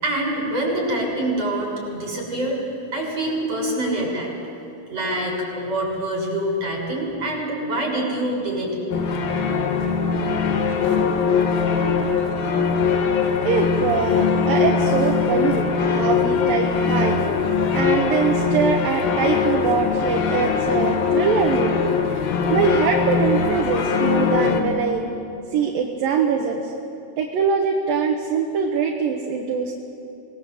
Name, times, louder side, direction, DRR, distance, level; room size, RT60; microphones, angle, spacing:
voice 1, 0.0-2.6 2.9-4.3 4.9-8.8, right 1 dB, 40° right, -1 dB, 7.3 m, -25 dB
sound 1, 8.9-24.6, left 5 dB, 70° left, 3.4 m, -21 dB
voice 2, 13.4-17.2 17.7-22.2 22.5-25.0 25.5-26.7 27.2-29.7, right 5 dB, 70° right, 1 dB, 2.9 m, -23 dB
25.5 x 20.0 x 7.9 m, 2.8 s
omnidirectional pair, 4.5 m